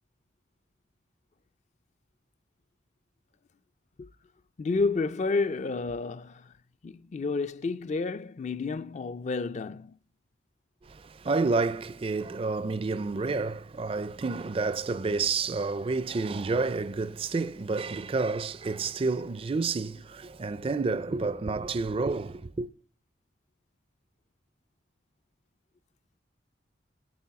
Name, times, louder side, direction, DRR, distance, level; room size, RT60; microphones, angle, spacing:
voice 1, 4.6-6.5 6.8-10.0, left 3 dB, 40° left, 0.4 m, -30 dB
voice 2, 10.9-22.7, right 3 dB, 30° right, 0.4 m, -29 dB
8.6 x 8.6 x 5.7 m
head